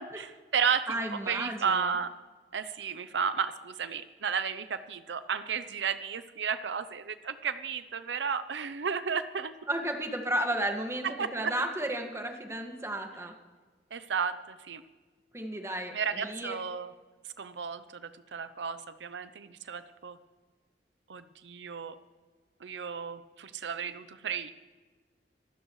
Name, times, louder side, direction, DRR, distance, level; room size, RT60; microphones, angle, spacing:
voice 1, 0.0-1.0 1.3-2.1 2.5-9.5 11.2-11.5 13.9-14.8 15.9-16.9 17.4-20.2 21.1-22.0 22.6-24.5, right 6 dB, 85° right, 12 dB, 0.6 m, -33 dB
voice 2, 0.9-2.0 9.7-11.1 11.3-13.3 15.3-16.6, right 1 dB, 15° right, 3 dB, 1.9 m, -33 dB
25.0 x 13.0 x 3.2 m, 1.4 s
head